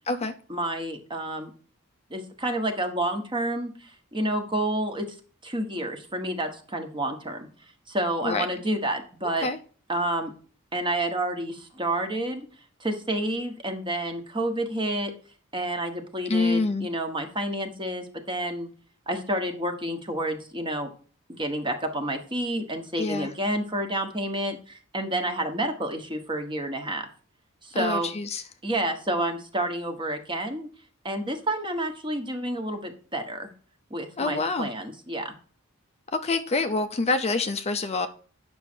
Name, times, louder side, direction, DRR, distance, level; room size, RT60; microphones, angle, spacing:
voice 1, 0.5-1.5 2.1-5.1 5.4-7.5 7.9-9.5 9.9-10.3 10.7-12.5 12.8-15.1 15.5-18.7 19.1-20.9 21.3-27.1 27.6-28.1 28.6-30.7 31.0-33.5 33.9-35.3, right 1 dB, 25° right, 1.3 m, -29 dB
voice 2, 16.3-16.9 23.0-23.3 27.8-28.4 34.2-34.7 36.2-38.1, left 3 dB, 30° left, 0.6 m, -26 dB
9.1 x 6.2 x 4.4 m
head